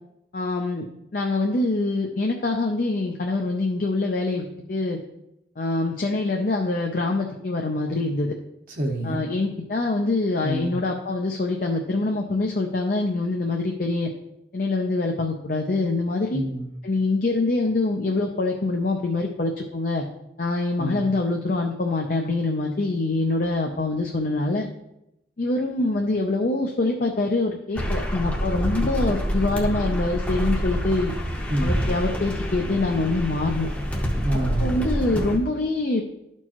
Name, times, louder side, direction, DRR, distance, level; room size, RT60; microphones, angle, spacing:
voice 1, 0.3-0.8 1.1-5.0 5.6-8.3 9.0-14.1 14.5-16.4 16.8-20.1 20.4-24.7 25.4-31.1 31.6-33.7 34.6-36.0, left 2 dB, 50° left, 1 dB, 0.5 m, -25 dB
voice 2, 8.7-9.3 10.4-10.8 16.3-16.7 20.8-21.0 31.5-31.8 34.2-34.8, right 1 dB, 50° right, 0 dB, 0.9 m, -27 dB
sound 1, 27.7-35.4, equal, 10° left, 0.8 m, -27 dB
12.0 x 4.5 x 2.9 m, 0.86 s
head